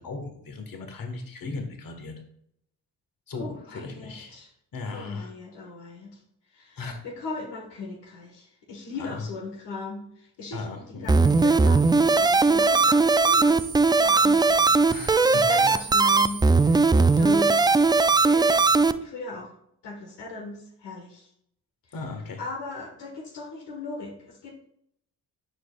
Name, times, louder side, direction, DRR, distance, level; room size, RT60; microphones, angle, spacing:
voice 1, 0.0-2.1 3.3-4.4 4.7-5.3 6.8-7.0 9.0-9.2 10.5-11.1 14.9-15.5 21.9-22.4, left 3 dB, 50° left, 5 dB, 1.6 m, -37 dB
voice 2, 3.3-4.5 4.9-6.2 6.5-14.8 15.3-18.6 19.0-19.5 19.8-21.3 21.8-22.0 22.4-24.5, left 3 dB, 75° left, 0 dB, 1.6 m, -38 dB
sound 1, 11.1-18.9, right 3 dB, 10° right, 0.3 m, -19 dB
11.0 x 5.1 x 2.4 m, 0.71 s
supercardioid pair, 45°, 42 cm